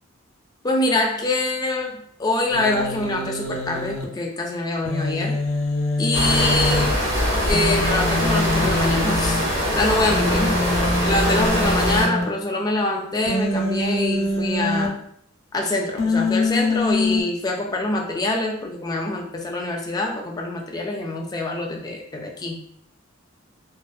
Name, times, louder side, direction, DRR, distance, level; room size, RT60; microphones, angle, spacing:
voice 1, 0.6-5.4 6.0-7.0 7.4-9.5 9.7-10.6 11.0-14.9 15.5-22.7, left 2 dB, 20° left, 1 dB, 0.3 m, -25 dB
Human voice, 2.5-4.0 4.9-6.9 7.5-9.4 10.1-12.2 13.3-14.9 16.0-17.2, left 2 dB, 80° left, 0.5 m, -24 dB
sound 1, 6.1-12.0, equal, 55° right, 1.2 m, -22 dB
2.5 x 2.3 x 2.3 m, 0.69 s
head